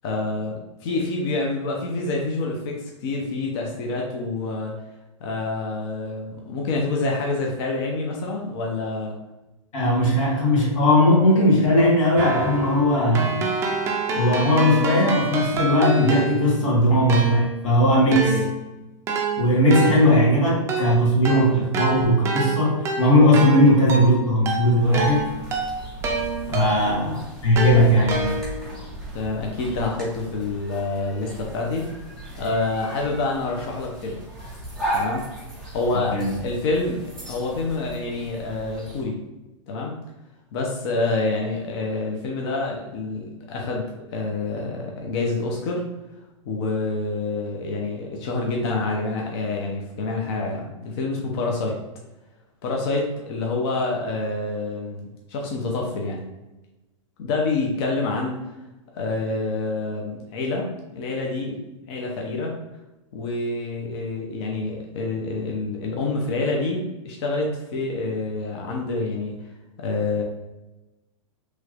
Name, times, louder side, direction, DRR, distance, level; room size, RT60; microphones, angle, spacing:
voice 1, 0.0-4.7 5.2-9.2 18.2-18.5 26.7-26.9 29.1-31.9 32.3-34.2 34.9-35.2 35.7-39.2 39.7-40.0 40.5-45.8 46.4-51.8 52.6-56.2 57.2-58.4 59.0-62.5 63.1-69.4 69.8-70.2, left 3 dB, 50° left, 0 dB, 0.7 m, -27 dB
voice 2, 9.7-13.4 14.1-18.4 19.4-25.3 26.5-28.3 36.1-36.3, left 1 dB, 80° left, -4 dB, 1.5 m, -18 dB
Keyboard (musical), 12.2-16.7 17.1-27.0 27.6-28.8, right 3 dB, 15° right, 0.4 m, -28 dB
sound 1, 24.8-39.0, right 1 dB, ahead, 1.4 m, -36 dB
3.1 x 3.1 x 2.4 m, 1.0 s
hypercardioid pair, 145°, 17 cm